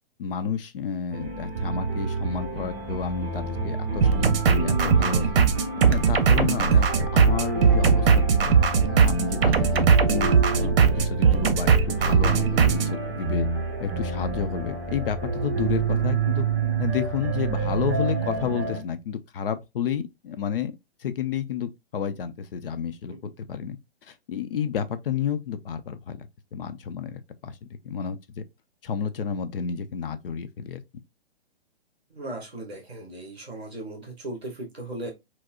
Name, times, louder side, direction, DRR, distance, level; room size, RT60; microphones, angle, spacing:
voice 1, 0.2-5.5 5.9-6.9 7.1-8.2 8.5-8.6 9.0-13.5 13.8-16.5 16.8-20.7 21.0-27.6 27.8-28.4 28.8-30.8, left 7 dB, 65° left, 0.6 m, -31 dB
sound 1, 1.1-18.8, right 4 dB, 20° right, 0.8 m, -28 dB
sound 2, 4.0-12.9, right 6 dB, 65° right, 0.7 m, -20 dB
voice 2, 32.1-35.1, right 1 dB, ahead, 0.3 m, -37 dB
4.7 x 2.0 x 2.3 m
hypercardioid pair, 150°, 31 cm